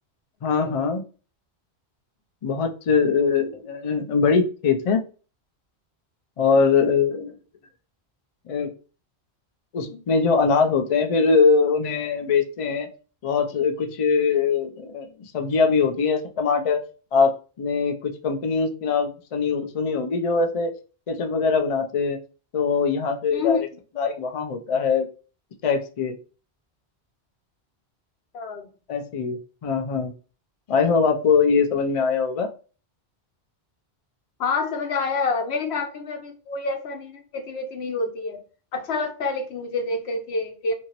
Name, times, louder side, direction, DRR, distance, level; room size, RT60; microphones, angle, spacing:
voice 1, 0.4-1.0 2.4-5.0 6.4-7.4 8.5-8.7 9.7-12.9 13.2-16.8 17.1-17.3 17.6-20.7 21.1-22.2 22.5-23.7 24.0-25.1 25.6-26.2 28.9-30.1 30.7-32.5, left 5 dB, 55° left, 5 dB, 0.4 m, -22 dB
voice 2, 28.3-28.7 34.4-38.4 38.7-40.7, left 4 dB, 75° left, 5 dB, 0.9 m, -27 dB
2.8 x 2.7 x 2.9 m, 0.36 s
omnidirectional pair, 1.1 m